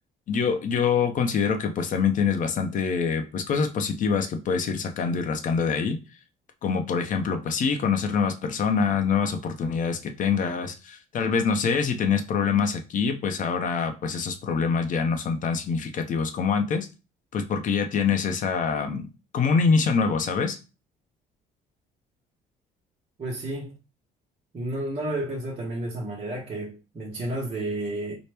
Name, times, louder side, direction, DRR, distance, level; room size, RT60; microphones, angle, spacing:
voice 1, 0.3-6.0 6.6-16.9 17.3-19.1 19.3-20.6, left 5 dB, 50° left, 0.7 m, -25 dB
voice 2, 23.2-23.7 24.5-28.2, right 1 dB, 35° right, 1.0 m, -31 dB
4.4 x 2.1 x 3.3 m
cardioid pair, 110°, 17 cm